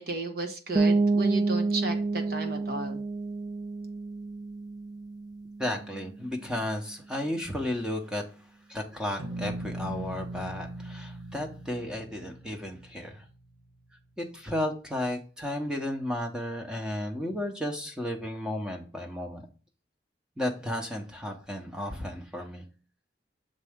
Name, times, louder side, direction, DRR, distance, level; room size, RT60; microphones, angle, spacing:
voice 1, 0.0-3.0, right 3 dB, 55° right, 4 dB, 1.2 m, -34 dB
sound 1, 0.8-6.4, right 3 dB, 25° right, 0.4 m, -29 dB
voice 2, 5.6-8.2 8.7-13.2 14.2-19.5 20.4-22.7, left 1 dB, 5° right, 2 dB, 0.9 m, -33 dB
sound 2, 9.2-14.1, right 1 dB, 80° right, 1.6 m, -40 dB
6.7 x 4.1 x 3.6 m, 0.37 s
head